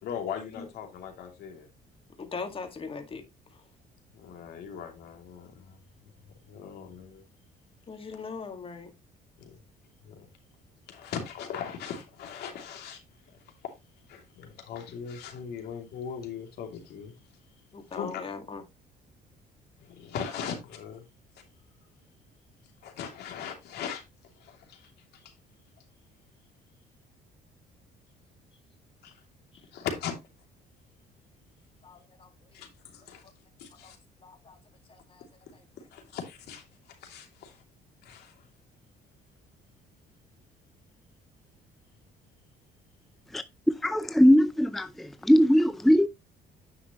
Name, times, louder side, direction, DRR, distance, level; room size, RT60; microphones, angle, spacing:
voice 1, 0.0-1.7 4.1-7.3 9.4-9.6 10.0-10.3 10.9-17.3 17.9-18.3 19.8-21.1 22.8-24.0 24.3-25.3 29.0-29.2 29.7-30.1 32.5-33.2 33.6-34.0 35.2-37.6 38.0-38.5, left 7 dB, 75° left, 2.8 m, -40 dB
voice 2, 2.2-3.2 7.9-8.9 17.7-18.6 31.8-32.3 33.8-33.9 34.2-34.6 34.9-35.2, left 4 dB, 35° left, 2.0 m, -40 dB
voice 3, 43.8-46.1, equal, ahead, 0.5 m, -20 dB
9.8 x 5.8 x 3.0 m
cardioid pair, 110°, 17 cm